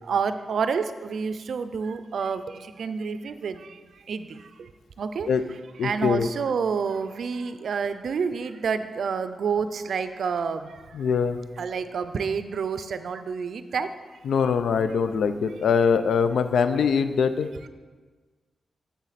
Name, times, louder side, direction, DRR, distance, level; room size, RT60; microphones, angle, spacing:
voice 1, 0.1-2.4 2.8-3.6 4.1-4.3 5.0-5.3 5.8-10.7 11.6-13.9, right 5 dB, 70° right, 11 dB, 0.4 m, -28 dB
voice 2, 5.8-6.3 10.9-11.4 14.3-17.5, left 6 dB, 85° left, 10 dB, 0.4 m, -23 dB
7.3 x 7.2 x 4.1 m, 1.4 s
wide cardioid pair, 105°, 0 cm